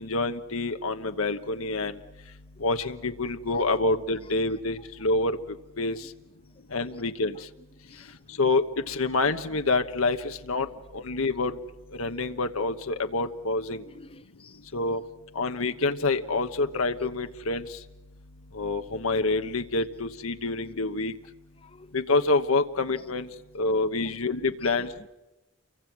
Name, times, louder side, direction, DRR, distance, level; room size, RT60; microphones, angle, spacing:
voice 1, 0.0-2.0 2.6-5.4 5.8-6.0 6.7-7.4 8.4-10.7 10.9-11.6 12.0-13.8 14.7-15.0 15.3-17.7 18.5-21.1 21.9-23.3 23.5-25.1, left 3 dB, 85° left, 1.2 m, -27 dB
voice 2, 7.8-8.2 13.9-14.6 21.6-21.9 24.0-24.1 24.6-24.9, left 3 dB, 25° left, 0.8 m, -51 dB
29.5 x 23.5 x 6.1 m
head